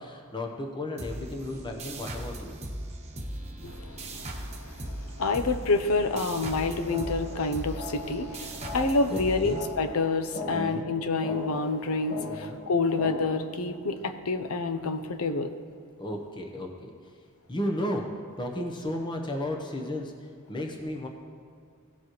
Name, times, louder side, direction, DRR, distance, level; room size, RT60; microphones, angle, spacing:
voice 1, 0.0-2.6 9.1-9.6 10.5-10.9 12.3-12.6 16.0-16.9 17.5-18.1 18.4-21.1, left 1 dB, 20° left, 2 dB, 0.9 m, -34 dB
sound 1, 1.0-10.2, right 1 dB, 30° right, 1.1 m, -39 dB
voice 2, 3.6-15.5, left 3 dB, 75° left, 9 dB, 0.7 m, -28 dB
sound 2, 6.4-13.4, left 2 dB, 35° left, 1.3 m, -40 dB
17.5 x 7.3 x 3.1 m, 2.2 s
head